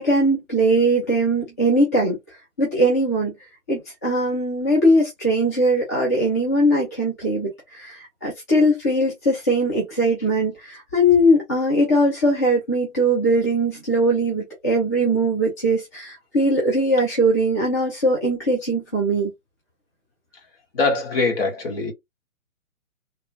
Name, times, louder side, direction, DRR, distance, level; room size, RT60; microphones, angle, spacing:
voice 1, 0.0-2.2 2.6-3.3 3.7-19.3, right 1 dB, 15° left, 0.5 m, -20 dB
voice 2, 20.8-21.9, left 3 dB, 45° left, 1.5 m, -22 dB
3.5 x 2.9 x 2.9 m
figure-of-eight pair, 145°, 40 cm